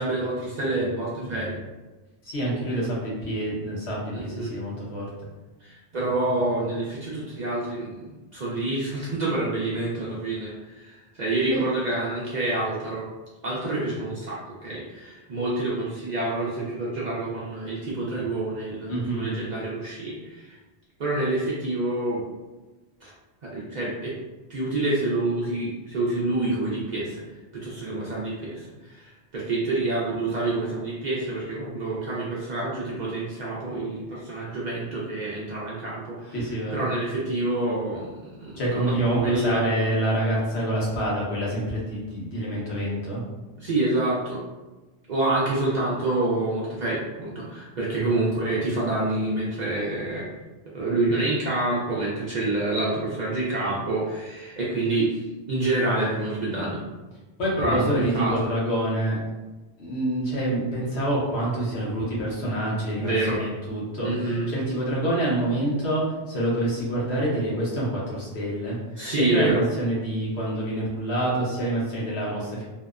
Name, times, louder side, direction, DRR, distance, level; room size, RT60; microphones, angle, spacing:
voice 1, 0.0-1.6 4.1-4.5 5.6-13.1 13.4-20.6 21.0-22.2 23.0-23.1 23.4-24.1 24.5-27.2 27.5-36.3 36.7-38.1 38.4-39.6 43.6-44.4 45.1-50.3 50.7-55.1 55.5-56.8 57.6-58.3 63.0-63.4 64.0-64.5 69.0-69.6, right 2 dB, 55° right, -6 dB, 0.5 m, -27 dB
voice 2, 2.2-5.1 11.5-11.6 18.9-19.3 36.3-36.8 38.5-43.2 48.0-48.2 57.4-59.2 59.8-68.8 69.1-72.6, right 1 dB, 70° left, -5 dB, 1.1 m, -27 dB
2.7 x 2.0 x 2.3 m, 1.2 s
omnidirectional pair, 1.1 m